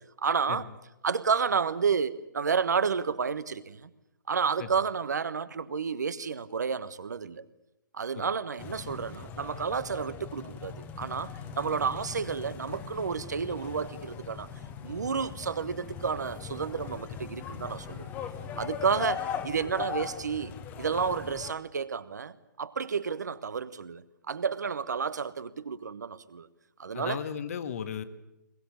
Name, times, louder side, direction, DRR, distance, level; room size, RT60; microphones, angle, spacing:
voice 1, 0.2-0.6 1.0-3.9 4.3-7.4 7.9-11.3 11.6-14.5 14.8-18.1 18.5-26.5 26.8-27.2, right 6 dB, 60° right, 1.3 m, -31 dB
sound 1, 8.6-21.5, left 7 dB, 20° left, 1.3 m, -40 dB
voice 2, 26.9-28.0, left 8 dB, 45° left, 1.6 m, -35 dB
22.0 x 21.0 x 8.7 m
figure-of-eight pair, 125°, 11 cm